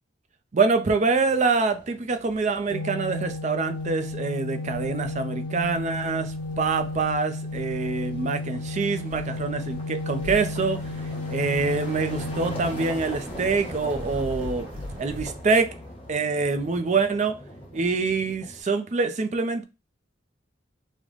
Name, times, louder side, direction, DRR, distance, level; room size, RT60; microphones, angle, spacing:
voice 1, 0.5-10.9 11.3-14.7 15.0-15.7 16.1-17.4 17.7-19.6, right 4 dB, 40° right, 0.5 m, -25 dB
sound 1, 0.8-18.6, equal, 30° left, 1.1 m, -43 dB
sound 2, 2.2-3.3 3.7-4.2 4.6-5.2 5.5-7.2 7.5-8.0 9.0-9.8 10.1-11.1 11.5-12.7 13.0-15.4, equal, 65° right, 1.0 m, -42 dB
Organ, 2.7-13.6, left 2 dB, 90° left, 0.5 m, -33 dB
3.2 x 2.1 x 3.7 m
head